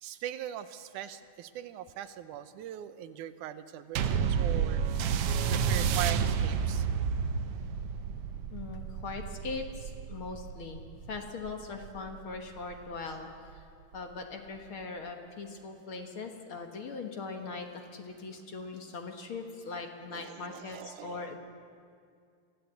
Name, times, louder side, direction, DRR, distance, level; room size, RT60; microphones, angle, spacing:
voice 1, 0.0-4.8 5.5-6.9 20.1-21.2, right 11 dB, 90° right, 12 dB, 2.3 m, -40 dB
sound 1, 4.0-12.7 13.5-13.6, right 7 dB, 65° right, 1.6 m, -31 dB
voice 2, 8.5-10.8 11.1-13.7 13.9-21.4, left 4 dB, 50° left, 4 dB, 2.0 m, -40 dB
24.0 x 15.5 x 8.2 m, 2.3 s
omnidirectional pair, 3.5 m